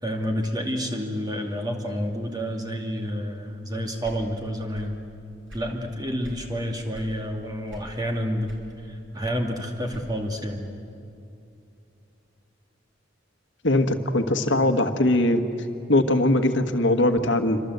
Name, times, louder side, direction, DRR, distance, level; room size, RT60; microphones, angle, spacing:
voice 1, 0.0-5.0 5.5-8.5 8.8-10.7, equal, 20° right, 2 dB, 2.5 m, -29 dB
sound 1, 4.0-5.0 5.3-6.5 6.9-7.2 7.7-8.1 8.4-10.3, equal, 80° right, 6.1 m, -44 dB
voice 2, 13.6-15.4 15.9-17.6, left 1 dB, 75° left, 7 dB, 1.5 m, -21 dB
27.5 x 26.0 x 8.1 m, 2.7 s
head